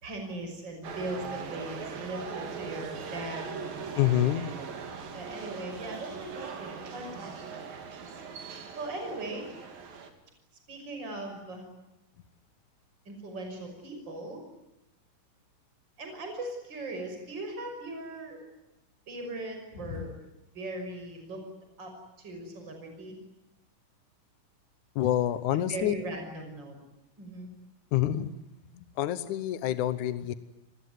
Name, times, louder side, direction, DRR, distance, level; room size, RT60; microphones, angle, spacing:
voice 1, 0.0-4.5 5.1-8.2 8.8-9.5 10.7-11.6 13.1-14.4 16.0-18.4 19.1-20.1 20.5-21.4 21.8-23.2 25.5-26.8 27.2-27.5, right 2 dB, 30° right, 4 dB, 6.3 m, -39 dB
sound 1, 0.8-10.1, right 6 dB, 85° right, 4.6 m, -40 dB
voice 2, 4.0-4.5 19.9-20.1 25.0-25.9 27.9-28.3 29.0-30.3, left 12 dB, 70° left, 13 dB, 2.4 m, -27 dB
29.5 x 20.5 x 9.5 m, 0.95 s
omnidirectional pair, 3.9 m